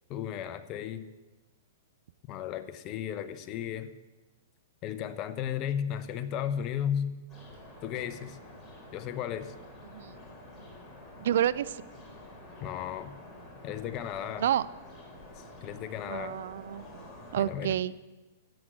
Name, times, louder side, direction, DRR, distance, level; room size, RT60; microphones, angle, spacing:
voice 1, 0.1-1.1 2.3-3.9 4.8-7.1 7.8-8.4 8.9-9.5 12.6-13.1 13.6-14.5 15.4-16.4 17.4-17.7, left 9 dB, 35° left, 11 dB, 0.9 m, -34 dB
sound 1, 7.3-17.5, left 1 dB, 10° left, 3.9 m, -49 dB
voice 2, 9.9-10.2 11.2-11.8 14.4-14.7 16.1-17.0 17.3-17.9, right 10 dB, 65° right, 18 dB, 0.4 m, -29 dB
12.0 x 7.8 x 7.8 m, 1.2 s
hypercardioid pair, 120°, 0 cm